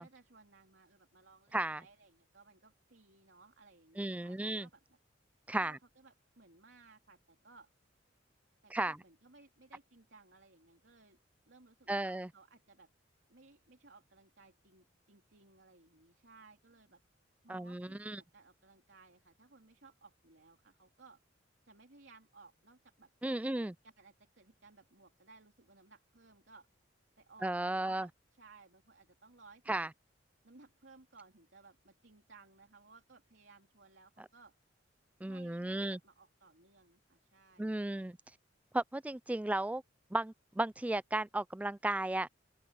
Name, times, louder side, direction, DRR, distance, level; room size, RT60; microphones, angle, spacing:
voice 1, 0.0-5.0 5.6-7.7 8.6-11.2 11.5-12.9 13.3-17.0 17.4-21.2 21.6-23.1 23.4-26.7 27.2-29.9 30.4-34.6 35.3-37.8, right 3 dB, 65° right, 3.5 m, -60 dB
voice 2, 4.0-4.7 5.5-5.8 8.7-9.0 11.9-12.3 17.5-18.2 23.2-23.7 27.4-28.1 29.7-29.9 35.2-36.0 37.6-38.2 38.7-39.8 40.1-42.3, right 2 dB, 10° right, 0.3 m, -34 dB
open air
head